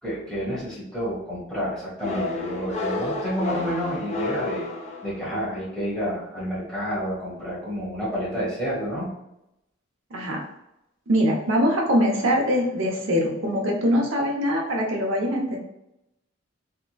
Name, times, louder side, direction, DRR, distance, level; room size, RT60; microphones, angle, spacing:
voice 1, 0.0-4.7 5.0-9.1, equal, 5° left, -8 dB, 1.2 m, -29 dB
sound 1, 2.0-5.5, left 3 dB, 30° left, 0.5 m, -31 dB
voice 2, 11.1-15.6, equal, 65° right, -1 dB, 0.8 m, -23 dB
3.5 x 2.9 x 2.3 m, 0.84 s
head